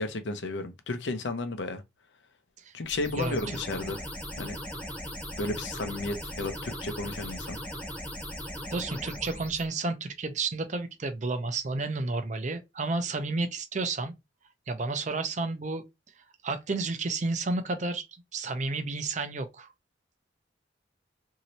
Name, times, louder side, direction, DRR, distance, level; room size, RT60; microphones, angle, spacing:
voice 1, 0.0-1.8 2.7-4.0 4.4-4.6 5.4-7.6, left 2 dB, 75° left, 0.6 m, -33 dB
sound 1, 2.9-9.7, equal, 10° left, 0.9 m, -38 dB
voice 2, 3.2-3.6 8.7-14.1 14.7-15.8 16.4-18.1 18.3-19.7, right 3 dB, 40° right, 0.5 m, -31 dB
3.1 x 2.8 x 2.7 m
head